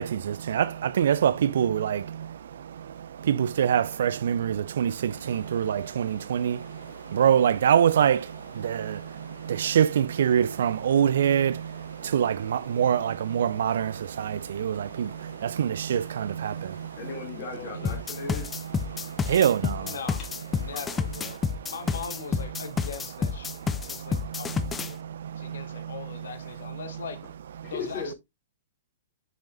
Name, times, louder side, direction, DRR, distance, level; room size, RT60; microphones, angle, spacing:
voice 1, 0.0-17.0 18.9-20.0 21.3-21.7 23.5-26.3 27.6-27.7, right 9 dB, 60° right, 0.4 m, -26 dB
sound 1, 5.1-21.4, right 2 dB, 85° right, 1.8 m, -48 dB
voice 2, 17.0-18.5 20.2-20.3 27.6-28.1, left 4 dB, 35° left, 2.9 m, -36 dB
voice 3, 17.5-18.0 19.8-20.2 20.5-21.4 21.7-25.0 25.4-27.2 27.7-28.1, left 6 dB, 65° left, 1.3 m, -40 dB
sound 2, 17.8-24.9, left 5 dB, 15° left, 0.5 m, -29 dB
6.7 x 6.3 x 2.7 m
figure-of-eight pair, 110°, 0 cm